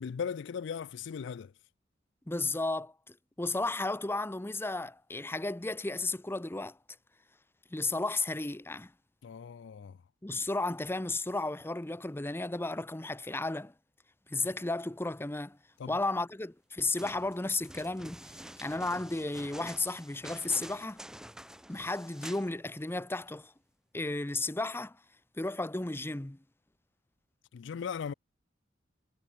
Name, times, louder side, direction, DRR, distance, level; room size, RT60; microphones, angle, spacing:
voice 1, 0.0-1.5 9.2-10.0 15.8-16.0 27.5-28.1, left 6 dB, 65° left, 0.4 m, -38 dB
voice 2, 2.3-6.8 7.7-8.9 10.2-13.7 14.3-15.6 15.9-21.0 21.7-23.5 23.9-25.0 25.4-26.4, left 2 dB, 10° left, 0.7 m, -34 dB
sound 1, 16.9-22.5 22.8-22.9, right 1 dB, 5° right, 1.3 m, -48 dB
head